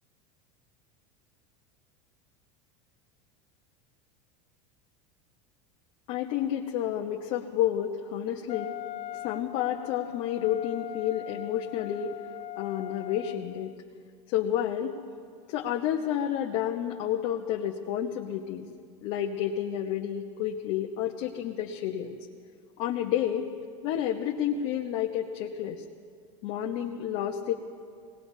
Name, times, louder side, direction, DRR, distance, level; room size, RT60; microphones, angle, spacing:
voice 1, 6.1-8.7 9.2-12.2 12.6-13.7 14.3-15.0 15.5-18.7 19.0-22.2 22.8-23.5 23.8-25.8 26.4-27.5, left 10 dB, 60° left, -1 dB, 1.2 m, -30 dB
Wind instrument woodwind instrument, 8.5-13.7, left 17 dB, 40° left, 0.4 m, -41 dB
23.5 x 19.5 x 2.8 m, 2.2 s
supercardioid pair, 115°, 17 cm